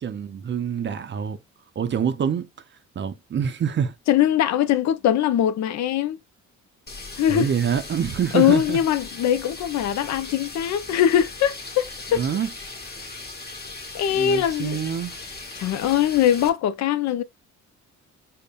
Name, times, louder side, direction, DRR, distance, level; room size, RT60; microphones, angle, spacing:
voice 1, 0.0-1.4 1.8-2.5 3.0-3.9 7.3-8.8 12.1-12.5 14.1-15.2, right 8 dB, 40° right, 0.5 m, -26 dB
voice 2, 4.1-6.2 7.2-7.5 8.3-12.2 13.9-14.9 15.6-17.2, left 10 dB, 65° left, 0.5 m, -21 dB
sound 1, 6.9-16.5, left 3 dB, 30° left, 1.2 m, -38 dB
5.2 x 2.1 x 2.3 m
cardioid pair, 90°, 30 cm